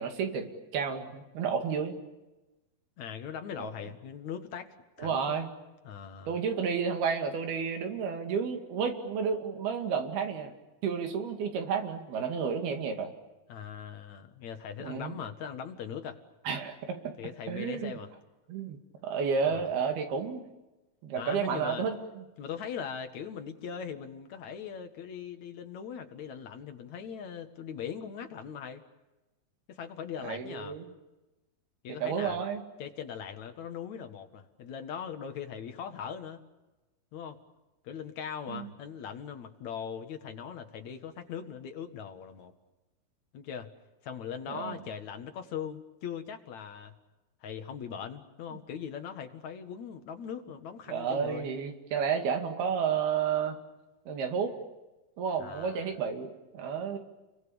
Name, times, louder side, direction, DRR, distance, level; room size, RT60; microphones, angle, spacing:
voice 1, 0.0-2.0 3.6-3.7 5.0-5.5 6.3-10.5 10.8-13.1 14.8-15.1 16.5-17.1 17.5-17.9 18.5-18.8 19.0-20.4 21.0-22.2 30.2-30.9 32.0-32.6 38.5-38.7 44.5-44.8 48.5-48.6 50.9-53.6 54.1-54.5 55.2-57.0, right 6 dB, 85° right, 5 dB, 4.3 m, -31 dB
voice 2, 3.0-5.4 5.8-6.4 13.5-16.2 17.2-18.1 19.5-19.7 21.1-21.9 22.4-28.8 29.7-30.8 31.8-32.4 32.8-36.4 37.1-37.4 37.8-42.5 43.3-43.7 44.0-46.9 47.4-51.5 55.4-56.0, left 7 dB, 55° left, 6 dB, 2.7 m, -40 dB
30.0 x 23.0 x 7.1 m, 1.1 s
omnidirectional pair, 4.3 m